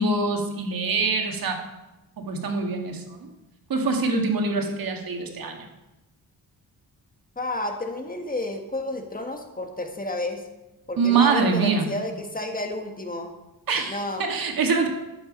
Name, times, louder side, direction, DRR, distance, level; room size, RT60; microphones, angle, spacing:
voice 1, 0.0-1.6 2.2-3.3 3.7-5.7 11.0-11.9 13.7-14.9, right 4 dB, 60° right, 3 dB, 2.0 m, -24 dB
voice 2, 7.3-10.5 10.9-13.3 13.9-14.3, left 1 dB, 20° left, 5 dB, 1.5 m, -31 dB
12.0 x 7.4 x 5.2 m, 1.0 s
cardioid pair, 85°, 39 cm